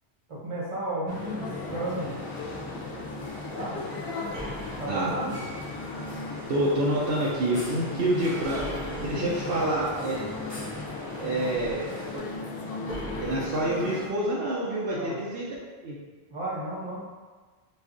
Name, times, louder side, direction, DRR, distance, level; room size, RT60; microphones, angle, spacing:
voice 1, 0.3-2.2 3.5-3.8 4.8-5.4 7.8-8.2 9.0-9.7 11.3-11.5 14.9-15.2 16.3-17.0, right 1 dB, 35° right, -6 dB, 0.8 m, -34 dB
sound 1, 1.1-14.1, left 3 dB, 70° left, 0.7 m, -37 dB
sound 2, 1.5-12.2, left 2 dB, 30° left, 0.7 m, -42 dB
sound 3, 4.3-5.7 8.5-9.7 12.9-14.2, right 1 dB, 85° right, 1.4 m, -40 dB
voice 2, 6.5-8.6 9.1-10.2 11.2-12.2 13.2-15.5 15.8-16.0, right 1 dB, 70° right, -5 dB, 0.7 m, -27 dB
4.1 x 2.4 x 2.4 m, 1.4 s
omnidirectional pair, 1.1 m